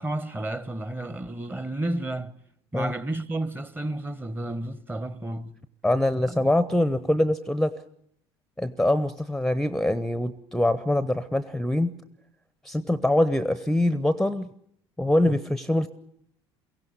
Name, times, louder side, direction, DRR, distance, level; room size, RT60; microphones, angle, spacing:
voice 1, 0.0-2.3 2.7-5.6 6.2-6.4, right 1 dB, 15° right, 1.2 m, -31 dB
voice 2, 5.8-7.8 8.6-11.9 12.6-14.5 15.0-15.9, left 1 dB, ahead, 0.9 m, -24 dB
23.0 x 16.5 x 8.2 m
figure-of-eight pair, 60°, 14 cm